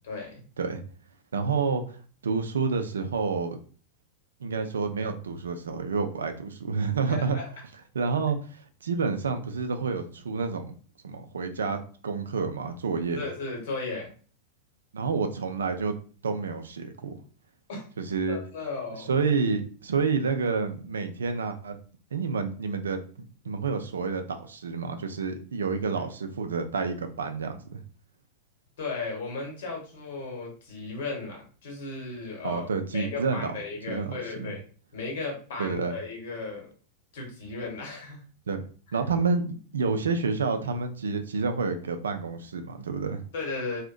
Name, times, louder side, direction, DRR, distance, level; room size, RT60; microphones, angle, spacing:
voice 1, 0.0-0.5 7.1-7.4 13.1-14.1 17.7-17.9 18.3-19.1 28.8-34.6 34.9-36.7 37.1-38.2 38.9-39.0 43.3-43.8, left 3 dB, 55° left, -1 dB, 1.0 m, -35 dB
voice 2, 1.3-2.0 2.2-3.6 4.4-7.4 7.9-10.7 11.0-11.8 12.0-13.3 14.9-16.0 16.2-17.2 18.0-18.4 19.1-21.8 22.1-27.8 32.4-33.5 33.9-34.5 35.6-35.9 38.5-38.6 38.9-43.2, right 4 dB, 70° right, 7 dB, 0.3 m, -29 dB
2.5 x 2.1 x 2.4 m, 0.41 s
figure-of-eight pair, 90°, 0 cm